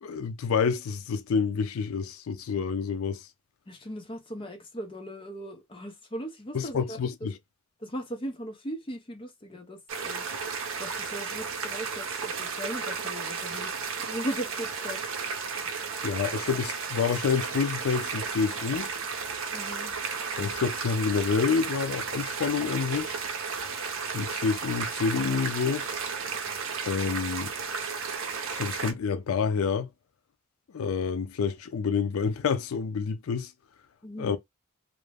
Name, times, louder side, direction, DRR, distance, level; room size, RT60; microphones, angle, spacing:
voice 1, 0.0-3.3 6.5-7.4 16.0-18.9 20.4-23.2 24.1-25.9 26.8-27.5 28.5-29.9 30.7-33.5 34.2-34.4, left 5 dB, 85° left, 0.4 m, -28 dB
voice 2, 3.7-7.0 7.8-10.3 10.8-15.1 19.5-19.9 34.0-34.4, equal, 25° left, 0.5 m, -38 dB
sound 1, 9.9-28.9, right 5 dB, 70° right, 0.6 m, -33 dB
2.5 x 2.0 x 3.3 m
head